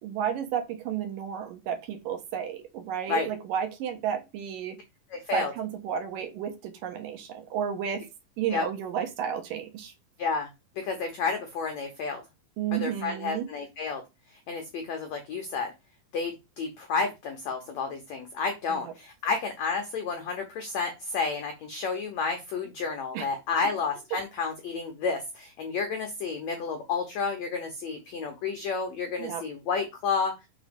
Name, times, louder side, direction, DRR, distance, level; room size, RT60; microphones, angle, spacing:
voice 1, 0.0-4.8 5.3-8.0 8.4-9.9 12.6-13.5 18.7-18.9 23.1-23.3 29.2-29.4, right 8 dB, 70° right, 5 dB, 2.5 m, -32 dB
voice 2, 5.1-5.5 8.5-8.6 10.2-10.5 10.8-12.2 12.7-14.0 14.5-15.7 16.1-30.3, left 5 dB, 75° left, 5 dB, 1.6 m, -31 dB
6.2 x 3.9 x 5.1 m, 0.24 s
omnidirectional pair, 4.5 m